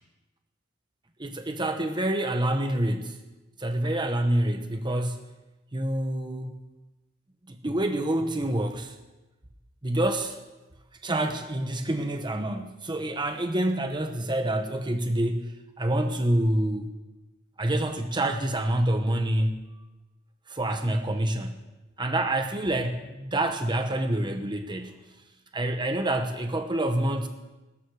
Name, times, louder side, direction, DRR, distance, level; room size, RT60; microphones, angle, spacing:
voice 1, 1.2-3.2 3.6-5.2 5.7-6.6 7.5-9.0 9.8-10.4 11.0-16.9 17.6-19.6 20.5-21.6 22.0-25.0 25.5-27.3, right 1 dB, 25° right, 5 dB, 1.0 m, -27 dB
19.5 x 13.0 x 4.8 m, 1.1 s
head